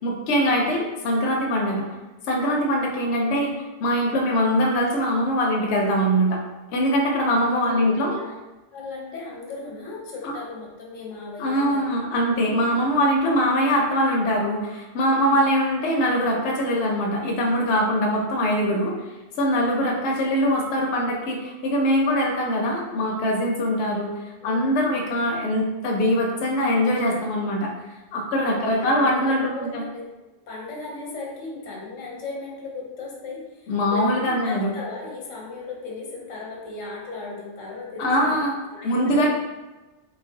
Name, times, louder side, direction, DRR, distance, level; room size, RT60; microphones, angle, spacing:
voice 1, 0.0-1.8 2.3-6.4 6.7-8.1 10.2-10.3 11.4-18.9 19.4-24.1 24.4-27.7 28.1-29.8 33.7-34.7 38.0-38.6 38.8-39.3, equal, 70° left, -1 dB, 0.8 m, -22 dB
voice 2, 7.3-8.3 8.7-11.8 13.3-13.4 15.1-15.4 19.6-19.8 24.4-24.8 28.5-30.0 30.5-38.3 38.7-39.2, left 3 dB, 85° left, -2 dB, 1.2 m, -36 dB
3.2 x 3.1 x 2.6 m, 1.1 s
omnidirectional pair, 1.3 m